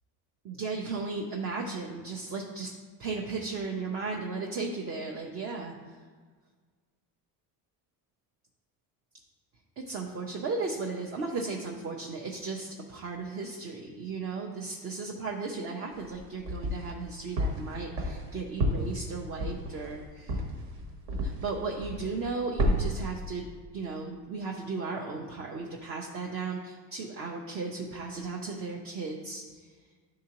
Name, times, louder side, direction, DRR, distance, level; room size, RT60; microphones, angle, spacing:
voice 1, 0.4-2.7 3.0-5.7 9.8-20.4 21.2-29.6, right 4 dB, 35° right, 0 dB, 0.5 m, -35 dB
sound 1, 15.9-17.0 17.4-21.5 21.8-22.3 22.6-23.1, equal, 65° right, 1.2 m, -30 dB
11.0 x 3.7 x 2.9 m, 1.5 s
cardioid pair, 170°, 42 cm